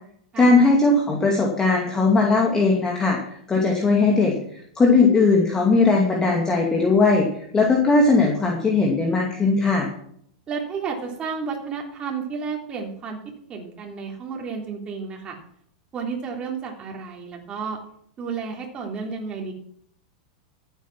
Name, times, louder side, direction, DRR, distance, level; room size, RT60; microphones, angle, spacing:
voice 1, 0.4-3.2 3.5-9.9, left 3 dB, 15° left, 0 dB, 2.5 m, -19 dB
voice 2, 10.5-13.2 13.5-15.4 15.9-17.8 18.2-19.5, right 5 dB, 25° right, 0 dB, 3.2 m, -31 dB
14.5 x 8.2 x 6.1 m, 0.66 s
hypercardioid pair, 120°, 4 cm